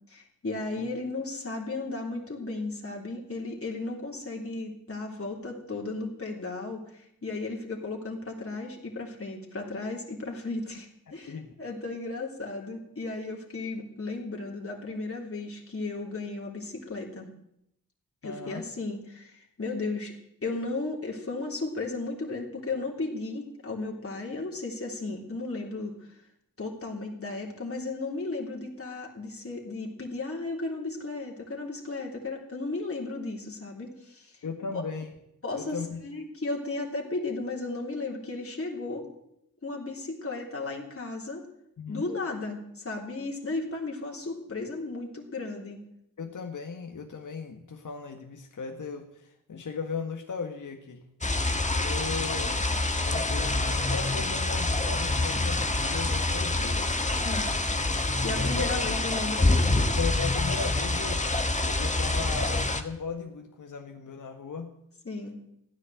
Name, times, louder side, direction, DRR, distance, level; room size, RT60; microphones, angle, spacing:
voice 1, 0.1-17.3 18.2-20.1 20.4-26.2 26.6-34.4 34.7-34.8 35.4-39.0 39.6-41.5 41.9-45.8 57.2-57.5 58.2-59.5 65.1-65.4, left 3 dB, 40° left, -1 dB, 3.5 m, -35 dB
voice 2, 11.1-11.5 18.2-18.6 34.4-35.1 35.5-36.0 41.8-42.1 46.2-51.0 51.8-52.6 52.8-57.0 58.4-58.7 60.0-61.3 61.6-64.7, left 5 dB, 60° left, 3 dB, 1.7 m, -37 dB
sound 1, 51.2-62.8, left 2 dB, 20° left, 1.7 m, -26 dB
15.0 x 10.0 x 7.8 m, 0.78 s
cardioid pair, 45°, 35 cm